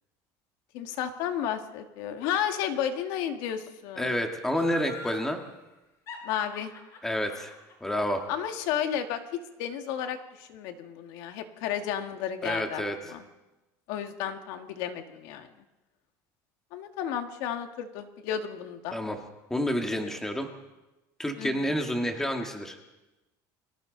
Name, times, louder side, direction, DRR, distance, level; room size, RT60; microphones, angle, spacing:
voice 1, 0.7-4.2 6.2-6.7 8.3-12.8 13.1-13.3 13.9-15.5 16.7-19.0 21.4-21.8, left 9 dB, 65° left, 6 dB, 1.9 m, -32 dB
voice 2, 4.0-5.4 7.0-7.5 7.8-8.3 12.4-13.0 18.9-19.2 19.5-20.5 21.2-22.8, equal, 5° left, 3 dB, 1.8 m, -29 dB
Laughter, 4.5-5.3 6.1-9.2 9.5-9.6, left 4 dB, 40° left, 5.5 m, -44 dB
30.0 x 22.5 x 4.0 m, 1.0 s
cardioid pair, 165°, 8 cm